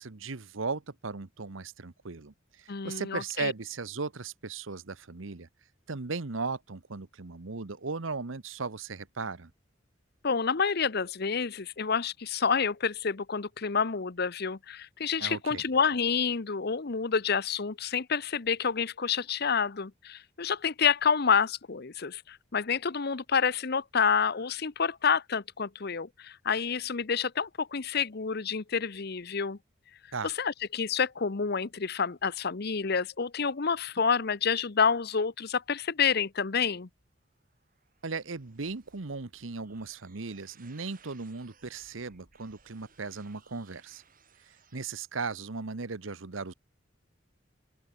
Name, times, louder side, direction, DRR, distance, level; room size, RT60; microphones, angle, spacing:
voice 1, 0.0-5.5 5.9-9.5 15.2-15.6 30.1-30.3 38.0-44.0 44.7-46.5, right 4 dB, 80° right, 1.1 m, -37 dB
voice 2, 2.7-3.5 10.2-29.6 30.2-36.9, left 6 dB, 55° left, 0.8 m, -28 dB
sound 1, 37.2-44.9, right 6 dB, 45° right, 7.8 m, -62 dB
open air
head